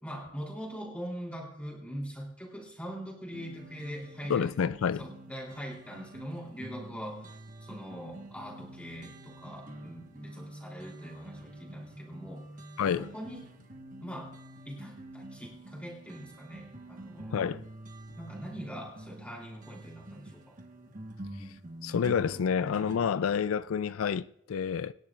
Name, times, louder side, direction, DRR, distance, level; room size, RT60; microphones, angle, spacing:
voice 1, 0.0-4.7 5.0-12.5 13.0-13.4 14.0-14.4 14.6-17.4 18.2-20.5, equal, 5° left, 3.2 m, -42 dB
sound 1, 3.3-23.0, right 1 dB, 40° right, 1.3 m, -47 dB
voice 2, 4.3-5.1 12.8-13.1 17.3-17.6 21.4-21.5 21.8-24.9, left 7 dB, 85° left, 0.4 m, -29 dB
25.5 x 10.5 x 2.5 m
head